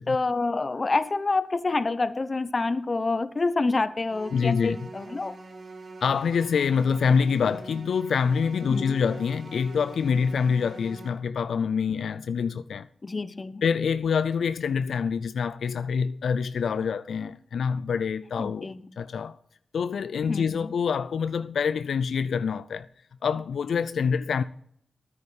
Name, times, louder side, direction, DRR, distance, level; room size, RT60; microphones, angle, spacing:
voice 1, 0.1-5.3 8.7-9.0 13.0-13.6 18.4-18.8 20.3-20.7, left 3 dB, 40° left, 0.9 m, -27 dB
sound 1, 4.1-11.1, right 3 dB, 60° right, 3.0 m, -44 dB
voice 2, 4.3-4.8 6.0-12.9 13.6-19.4 19.7-22.9 23.2-24.4, left 6 dB, 85° left, 0.4 m, -26 dB
9.7 x 9.4 x 7.2 m
cardioid pair, 55°, 0 cm